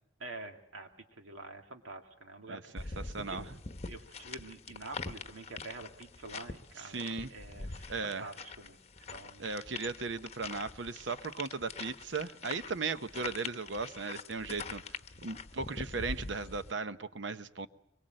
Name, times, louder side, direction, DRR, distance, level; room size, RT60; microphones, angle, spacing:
voice 1, 0.2-3.5 3.8-8.8 9.1-9.6, right 2 dB, 90° right, 4 dB, 2.4 m, -47 dB
voice 2, 2.5-3.6 6.8-7.3 7.9-8.3 9.4-17.7, right 4 dB, 65° right, 12 dB, 0.9 m, -37 dB
sound 1, 2.8-16.7, left 4 dB, 35° left, 0.9 m, -44 dB
24.0 x 22.0 x 7.7 m, 0.78 s
head